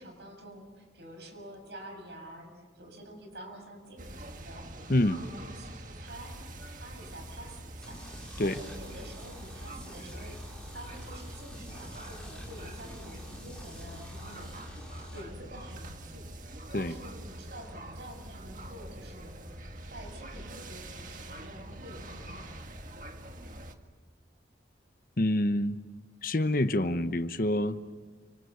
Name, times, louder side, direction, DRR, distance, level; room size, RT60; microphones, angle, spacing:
voice 1, 0.0-6.4 6.7-8.0 8.4-19.6 19.9-22.5, right 1 dB, 75° right, 3 dB, 7.2 m, -48 dB
sound 1, 4.0-23.7, right 1 dB, 45° right, 1.8 m, -45 dB
sound 2, 7.8-15.2, left 1 dB, 5° left, 5.2 m, -47 dB
voice 2, 25.2-25.8 26.2-27.9, left 1 dB, 50° left, 11 dB, 1.0 m, -27 dB
29.5 x 26.5 x 7.0 m, 1.4 s
head